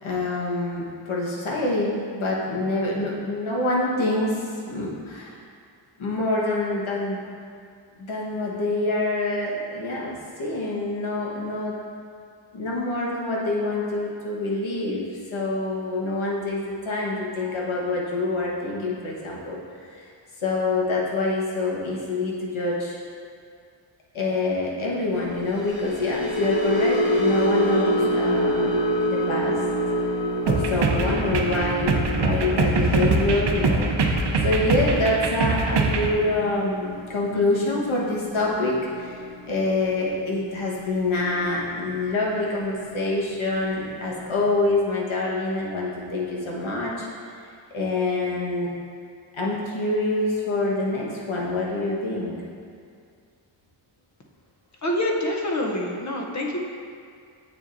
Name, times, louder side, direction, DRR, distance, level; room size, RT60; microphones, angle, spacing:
voice 1, 0.0-5.4 6.0-7.2 8.0-11.8 12.5-15.0 15.3-19.6 19.8-20.1 20.4-23.0 24.1-28.7 29.1-29.6 30.4-39.2 39.5-47.1 47.7-48.7 49.3-52.4, left 2 dB, 90° left, -4 dB, 1.3 m, -26 dB
sound 1, 25.4-41.8 42.1-42.4 42.7-43.0, equal, 65° left, 1.1 m, -28 dB
sound 2, 30.5-36.1, right 3 dB, 60° right, 0.6 m, -23 dB
voice 2, 54.8-56.6, left 1 dB, 40° left, -1 dB, 0.7 m, -26 dB
7.5 x 7.0 x 2.6 m, 2.3 s
wide cardioid pair, 180°, 47 cm